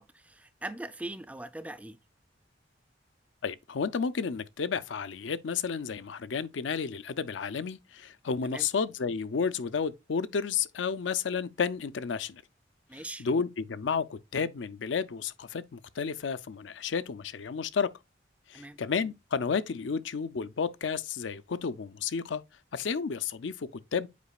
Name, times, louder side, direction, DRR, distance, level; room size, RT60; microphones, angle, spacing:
voice 1, 0.0-2.0 8.4-8.7 12.9-13.3 18.5-18.8, right 1 dB, 10° right, 0.4 m, -41 dB
voice 2, 3.4-12.4 13.2-17.9 18.5-22.4 22.7-24.1, left 5 dB, 85° left, 0.5 m, -32 dB
8.3 x 5.0 x 2.3 m
head